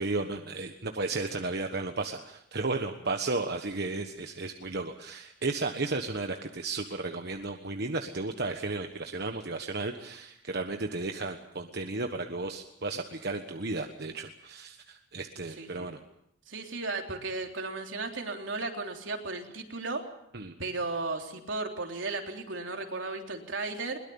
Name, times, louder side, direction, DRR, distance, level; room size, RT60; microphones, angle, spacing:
voice 1, 0.0-16.0 20.3-20.5, right 3 dB, 60° right, 5 dB, 1.4 m, -34 dB
voice 2, 15.6-15.9 16.5-20.0 20.6-24.0, right 3 dB, 85° right, 2 dB, 3.5 m, -35 dB
22.0 x 21.5 x 7.1 m, 0.76 s
head